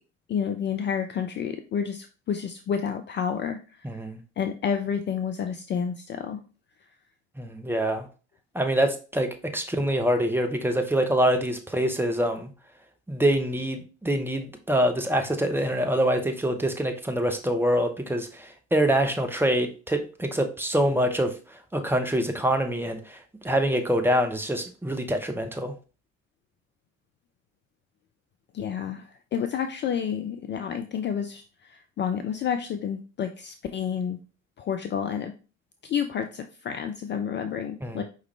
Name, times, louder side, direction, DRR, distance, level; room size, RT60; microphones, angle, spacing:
voice 1, 0.3-3.9 4.4-6.4 28.5-34.2 34.6-35.3 35.8-38.0, left 7 dB, 30° left, 7 dB, 0.4 m, -30 dB
voice 2, 3.8-4.2 7.4-8.1 8.5-12.5 13.1-23.2 23.4-25.7 37.8-38.0, right 1 dB, 5° right, 5 dB, 0.8 m, -25 dB
4.9 x 3.3 x 3.2 m, 0.35 s
figure-of-eight pair, 55°, 37 cm